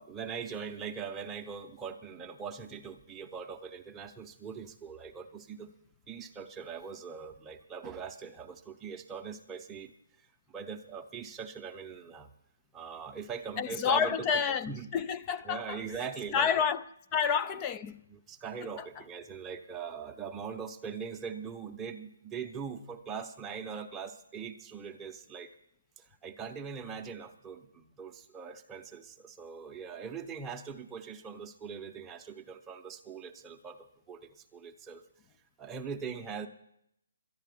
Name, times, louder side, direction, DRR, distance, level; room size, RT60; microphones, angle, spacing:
voice 1, 0.0-5.7 6.1-9.9 10.2-12.3 12.7-14.9 15.4-16.5 18.1-25.5 26.0-35.0 35.6-36.5, right 6 dB, 10° right, 0.8 m, -41 dB
voice 2, 13.6-15.8 16.3-16.8 17.1-18.0 18.8-18.9, left 7 dB, 20° left, 0.4 m, -29 dB
11.5 x 9.2 x 9.3 m
hypercardioid pair, 160°, 0 cm